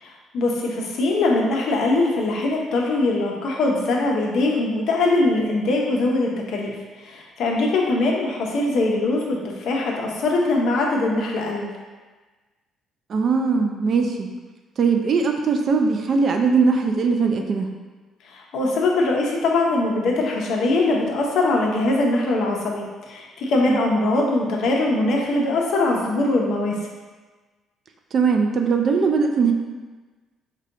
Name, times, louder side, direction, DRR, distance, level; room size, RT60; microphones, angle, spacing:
voice 1, 0.0-11.7 18.2-26.8, left 2 dB, 55° left, -1 dB, 0.7 m, -22 dB
voice 2, 13.1-14.3 14.8-17.7 23.7-23.8 28.1-29.5, right 5 dB, 40° right, 4 dB, 0.3 m, -20 dB
4.8 x 2.2 x 3.8 m, 1.3 s
cardioid pair, 165°, 0 cm